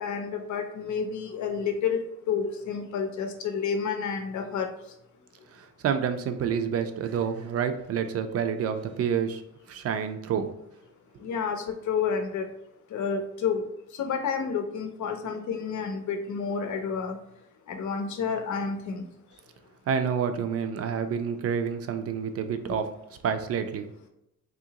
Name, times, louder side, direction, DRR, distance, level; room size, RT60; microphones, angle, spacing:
voice 1, 0.0-2.0 2.3-4.7 11.2-11.6 11.9-12.4 12.9-13.6 14.0-17.2 17.7-19.0, left 6 dB, 75° left, 5 dB, 0.6 m, -29 dB
voice 2, 5.5-9.4 9.7-10.5 19.9-22.9 23.2-23.8, right 7 dB, 50° right, 8 dB, 0.4 m, -28 dB
3.7 x 2.8 x 2.8 m, 0.83 s
wide cardioid pair, 155°, 30 cm